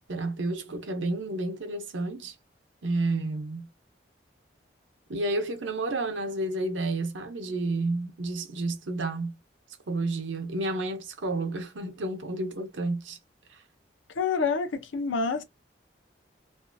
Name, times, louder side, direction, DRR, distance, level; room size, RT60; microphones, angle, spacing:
voice 1, 0.1-2.3 2.8-3.7 5.1-9.4 9.9-13.2, right 2 dB, 80° right, 0.7 m, -30 dB
voice 2, 14.2-15.4, left 5 dB, 85° left, 0.5 m, -27 dB
2.6 x 2.5 x 2.2 m
head